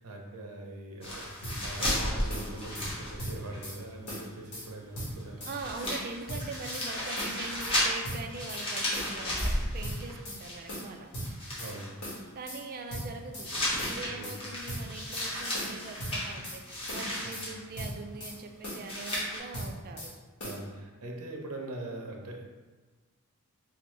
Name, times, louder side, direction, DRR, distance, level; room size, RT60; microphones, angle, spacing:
voice 1, 0.0-5.5 11.1-11.2 11.6-11.9 14.1-14.4 17.1-17.2 18.9-19.1 20.4-22.4, right 2 dB, 75° right, 1 dB, 0.7 m, -42 dB
sound 1, 1.0-3.6 3.9-4.0 5.2-5.3 5.5-10.9 11.2-11.9 13.4-17.5 18.8-19.4, left 1 dB, 25° left, 1.0 m, -34 dB
sound 2, 1.4-2.0 2.3-2.9 3.2-3.8 4.1-4.7 4.9-5.6 5.8-6.9 7.2-7.8 8.0-8.6 8.9-9.5 9.8-10.4 10.7-11.7 12.0-12.6 12.9-13.5 13.8-14.4 14.7-15.3 15.5-16.6 16.9-17.5 17.8-18.4 18.6-19.2 19.5-20.1 20.4-20.6, equal, 90° left, 1.5 m, -39 dB
voice 2, 5.4-11.1 12.3-13.5 13.8-20.1, right 3 dB, 40° right, 4 dB, 0.4 m, -42 dB
4.2 x 2.8 x 3.1 m, 1.3 s
head